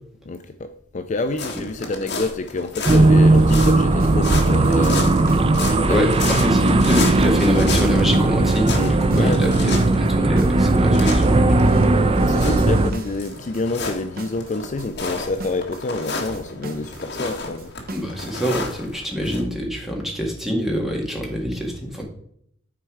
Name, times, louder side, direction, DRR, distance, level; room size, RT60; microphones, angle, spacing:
voice 1, 0.3-5.1 5.6-6.1 6.5-6.9 8.7-10.0 12.0-17.7, left 3 dB, 40° left, 8 dB, 0.4 m, -28 dB
sound 1, 1.3-19.4, left 3 dB, 60° left, 1.6 m, -33 dB
sound 2, 2.9-12.9, right 2 dB, 30° right, 0.5 m, -17 dB
sound 3, 3.0-18.3, right 1 dB, 50° right, 0.9 m, -39 dB
voice 2, 5.9-11.6 17.9-22.0, equal, ahead, -1 dB, 1.8 m, -25 dB
9.4 x 4.5 x 4.9 m, 0.69 s
head